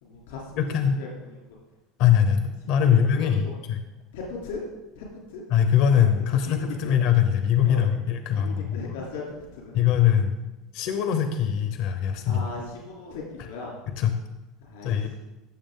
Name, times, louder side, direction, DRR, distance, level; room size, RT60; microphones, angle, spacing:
voice 1, 0.0-0.7 0.9-1.6 2.9-3.5 4.1-4.6 4.9-5.4 5.9-6.9 7.6-7.8 8.3-9.2 9.5-9.8 12.2-13.7 14.6-15.0, left 4 dB, 90° left, -3 dB, 3.2 m, -38 dB
voice 2, 0.6-1.0 2.0-3.8 5.5-8.8 9.7-10.4 10.7-12.4 14.0-14.1 14.8-15.1, left 9 dB, 65° left, 7 dB, 0.9 m, -22 dB
14.5 x 6.7 x 3.8 m, 1.1 s
supercardioid pair, 105°, 0 cm